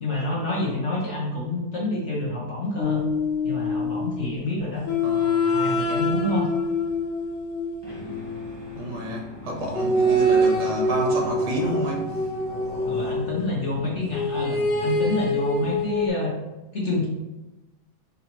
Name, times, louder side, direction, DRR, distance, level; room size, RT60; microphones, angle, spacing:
voice 1, 0.0-3.0 3.4-4.8 5.4-6.5 12.9-16.3 16.7-17.1, left 2 dB, 50° left, -5 dB, 0.9 m, -27 dB
sound 1, 2.8-4.2 4.9-8.7 9.7-13.4 14.1-16.1, left 1 dB, 70° left, 1.3 m, -25 dB
voice 2, 5.0-5.8 8.7-12.1, right 1 dB, 50° right, -1 dB, 0.5 m, -30 dB
sound 2, 7.8-16.1, left 5 dB, 25° left, 0.6 m, -40 dB
sound 3, 9.9-13.3, equal, 85° left, 2.2 m, -40 dB
4.1 x 2.8 x 4.2 m, 1.0 s
omnidirectional pair, 2.1 m